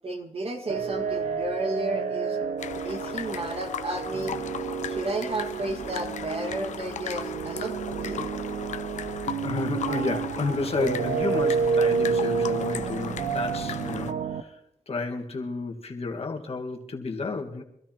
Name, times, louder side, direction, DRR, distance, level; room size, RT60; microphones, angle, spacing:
voice 1, 0.0-2.4 2.8-4.4 4.9-8.3, right 2 dB, 50° right, 3 dB, 1.9 m, -33 dB
sound 1, 0.7-14.4, right 5 dB, 85° right, 0.8 m, -29 dB
sound 2, 2.6-14.1, left 8 dB, 80° left, 0.6 m, -37 dB
voice 2, 9.4-14.6 14.9-17.6, left 4 dB, 55° left, 3 dB, 1.7 m, -31 dB
24.5 x 13.0 x 3.0 m, 0.79 s
cardioid pair, 70°, 12 cm